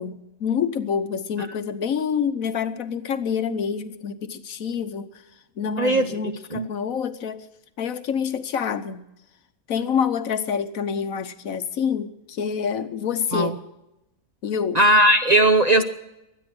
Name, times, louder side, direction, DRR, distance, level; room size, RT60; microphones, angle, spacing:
voice 1, 0.0-5.1 5.6-7.4 7.8-9.0 9.7-13.6 14.4-14.8, left 7 dB, 70° left, 10 dB, 1.4 m, -27 dB
voice 2, 5.8-6.1 6.5-6.7 13.3-13.5 14.7-15.8, right 1 dB, 35° right, 7 dB, 0.7 m, -17 dB
23.5 x 9.8 x 6.1 m, 0.91 s
omnidirectional pair, 1.5 m